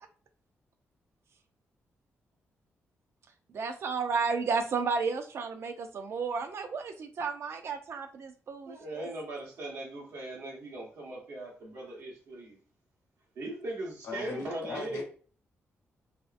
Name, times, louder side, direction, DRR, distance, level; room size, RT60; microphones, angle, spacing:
voice 1, 3.5-9.1, right 5 dB, 60° right, 7 dB, 0.4 m, -32 dB
voice 2, 8.7-12.6 13.3-15.0, right 1 dB, 80° right, -2 dB, 1.0 m, -39 dB
voice 3, 14.0-15.0, left 3 dB, 85° left, 1 dB, 0.8 m, -38 dB
2.6 x 2.4 x 2.4 m, 0.42 s
cardioid pair, 80°, 5 cm